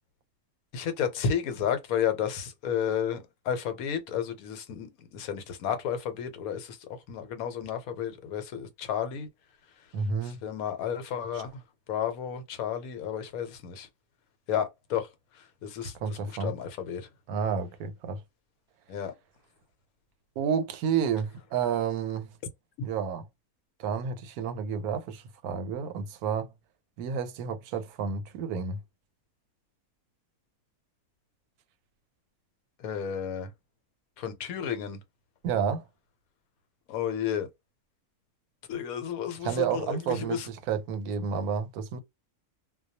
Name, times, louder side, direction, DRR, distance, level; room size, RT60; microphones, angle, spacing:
voice 1, 0.7-6.8 7.1-9.3 10.2-11.5 11.9-13.9 14.5-15.1 15.6-17.0 18.9-19.1 32.8-33.5 34.2-35.0 36.9-37.5 38.7-40.5, left 8 dB, 75° left, 1.1 m, -32 dB
voice 2, 9.9-10.4 16.0-16.5 17.3-18.2 20.4-22.3 22.8-23.3 23.8-26.5 27.0-28.8 35.4-35.8 39.4-42.0, right 7 dB, 85° right, 1.1 m, -30 dB
2.2 x 2.2 x 2.6 m
omnidirectional pair, 1.5 m